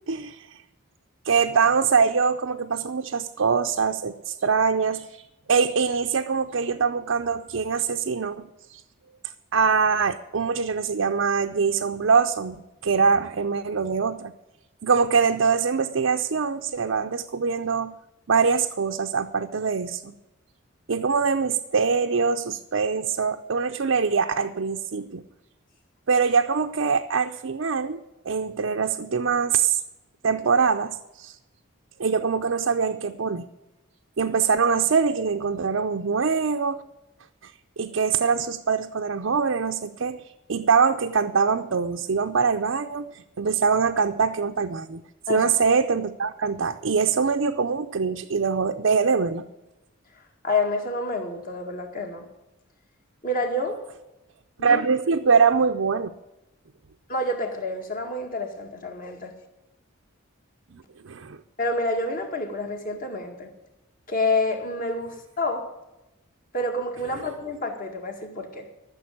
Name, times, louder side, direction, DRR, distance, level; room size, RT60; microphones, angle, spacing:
voice 1, 0.1-0.5 1.2-5.1 5.5-8.4 8.7-8.8 9.5-14.3 14.8-17.9 18.3-20.1 20.9-25.2 26.1-29.8 30.2-31.3 32.0-33.5 34.2-36.8 37.8-40.2 40.5-45.0 45.3-49.4 54.6-56.1 61.0-61.4, right 5 dB, 65° right, 4 dB, 0.6 m, -23 dB
voice 2, 50.1-52.3 53.2-53.8 54.6-54.8 57.1-59.3 61.6-63.5 64.1-65.7 66.5-68.7, left 2 dB, 40° left, 3 dB, 2.0 m, -28 dB
14.0 x 6.9 x 8.6 m, 0.97 s
head